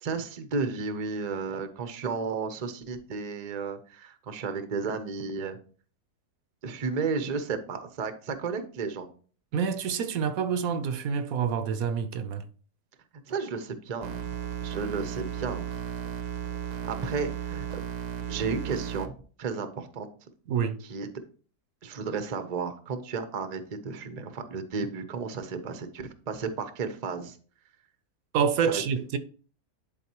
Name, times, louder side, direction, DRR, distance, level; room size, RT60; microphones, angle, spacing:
voice 1, 0.0-5.6 6.6-9.1 13.3-14.3 14.6-15.7 16.8-17.8 18.3-19.1 19.4-20.1 20.8-21.2 21.8-27.4 28.6-28.8, right 5 dB, 40° right, 0.6 m, -33 dB
voice 2, 9.5-12.4 20.5-20.8 28.3-29.2, right 7 dB, 70° right, 1.0 m, -27 dB
sound 1, 14.0-19.1, right 9 dB, 90° right, 1.3 m, -35 dB
11.0 x 4.1 x 2.9 m
omnidirectional pair, 1.6 m